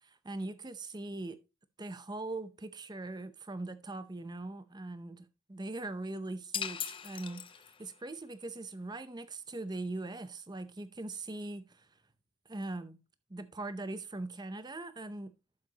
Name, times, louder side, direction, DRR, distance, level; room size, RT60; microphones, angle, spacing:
voice 1, 0.0-1.4 1.8-11.9 12.5-13.0 13.3-15.3, right 2 dB, 20° right, 0.6 m, -41 dB
sound 1, 6.5-8.0, left 8 dB, 25° left, 0.4 m, -39 dB
11.5 x 7.1 x 2.9 m
head